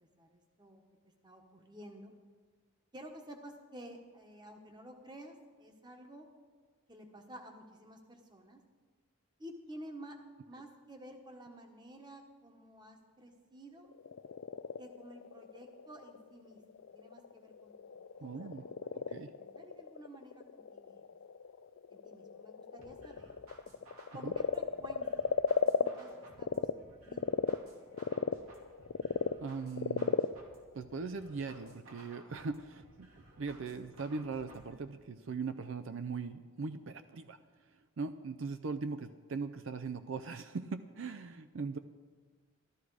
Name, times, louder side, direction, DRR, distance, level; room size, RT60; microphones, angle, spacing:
voice 1, 0.0-2.1 2.9-6.3 6.9-8.6 9.4-10.2 10.4-13.9 14.8-21.0 21.9-23.4 24.1-26.7 27.0-27.2 27.5-27.6, right 1 dB, 20° right, 4 dB, 1.2 m, -52 dB
Frog, 13.8-26.7 27.1-31.7, left 6 dB, 65° left, 0.4 m, -36 dB
voice 2, 18.2-18.6 19.1-19.3 24.2-24.3 29.4-30.2 30.7-33.1 33.4-37.4 38.0-41.8, right 4 dB, 65° right, 11 dB, 0.4 m, -40 dB
sound 1, 22.8-34.8, right 1 dB, 90° right, 2.7 m, -58 dB
13.5 x 13.0 x 4.8 m, 1.5 s
head